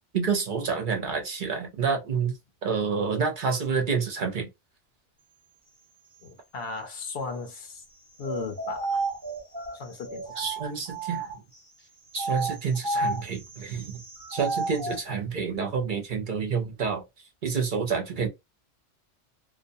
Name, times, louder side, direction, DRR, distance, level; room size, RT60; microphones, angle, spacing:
voice 1, 0.1-4.5 10.4-11.3 12.1-14.0 14.3-17.0 17.4-18.3, right 5 dB, 50° right, 0.7 m, -28 dB
voice 2, 6.2-7.8 8.2-9.0 9.7-10.4, left 4 dB, 60° left, 0.8 m, -36 dB
sound 1, 8.2-11.6 12.1-15.0, right 2 dB, 20° right, 0.8 m, -32 dB
2.4 x 2.1 x 2.6 m
omnidirectional pair, 1.2 m